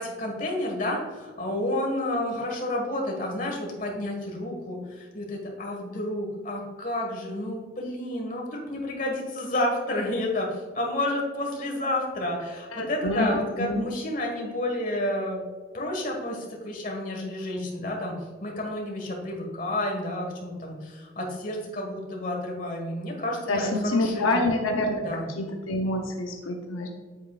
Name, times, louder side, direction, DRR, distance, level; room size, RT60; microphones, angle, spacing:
voice 1, 0.0-15.4 15.7-24.4 25.0-25.2, left 1 dB, 40° left, 0 dB, 1.6 m, -30 dB
voice 2, 12.7-13.8 23.5-25.1 25.4-26.9, left 2 dB, 85° left, 2 dB, 0.8 m, -27 dB
8.4 x 8.0 x 2.4 m, 1.4 s
head